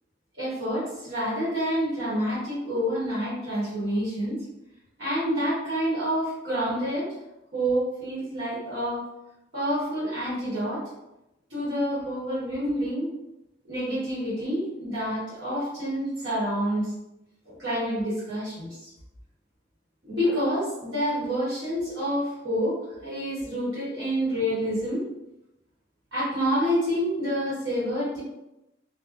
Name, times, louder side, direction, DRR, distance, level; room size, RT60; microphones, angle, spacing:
voice 1, 0.4-4.4 5.0-7.1 7.5-9.1 9.5-10.8 11.5-13.1 13.6-16.9 17.5-18.9 20.0-22.7 23.0-25.0 26.1-28.2, equal, 70° right, -10 dB, 1.1 m, -28 dB
2.4 x 2.1 x 2.4 m, 0.91 s
head